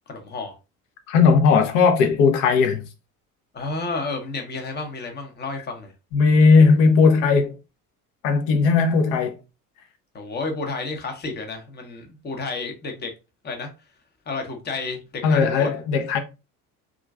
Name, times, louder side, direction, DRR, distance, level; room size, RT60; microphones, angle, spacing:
voice 1, 0.1-0.6 3.5-5.9 10.1-13.1 13.4-13.7 14.3-15.8, left 3 dB, 20° left, 0.8 m, -31 dB
voice 2, 1.1-2.8 6.1-7.5 8.2-9.4 15.2-16.2, left 4 dB, 55° left, 0.7 m, -17 dB
3.0 x 2.5 x 2.3 m
figure-of-eight pair, 65°, 46 cm